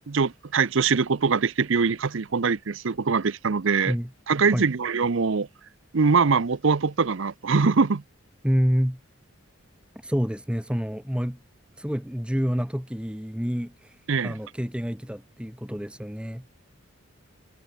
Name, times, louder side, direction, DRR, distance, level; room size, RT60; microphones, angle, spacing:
voice 1, 0.1-3.9 4.3-5.5 5.9-8.0 14.1-14.4, right 5 dB, 65° right, 0.6 m, -23 dB
voice 2, 8.4-9.0 10.0-11.4 11.8-16.6, equal, 5° right, 1.1 m, -28 dB
head